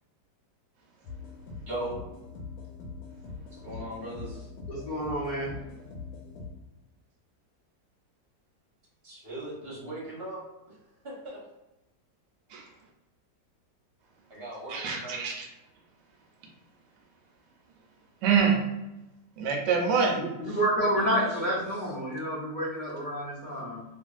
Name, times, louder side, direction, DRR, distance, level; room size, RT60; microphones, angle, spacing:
sound 1, 1.0-6.5, left 4 dB, 75° left, 1.2 m, -42 dB
voice 1, 1.7-2.0 3.5-4.5 9.0-10.8 11.0-11.4 14.3-15.3 20.7-21.9, right 1 dB, 40° right, -6 dB, 1.0 m, -39 dB
voice 2, 4.7-5.5 20.1-23.8, right 1 dB, 55° left, -9 dB, 0.5 m, -29 dB
voice 3, 14.7-15.5 18.2-18.6 19.4-20.2 20.5-20.6, right 6 dB, 75° right, 1 dB, 1.1 m, -25 dB
3.0 x 2.5 x 2.3 m, 0.97 s
omnidirectional pair, 1.9 m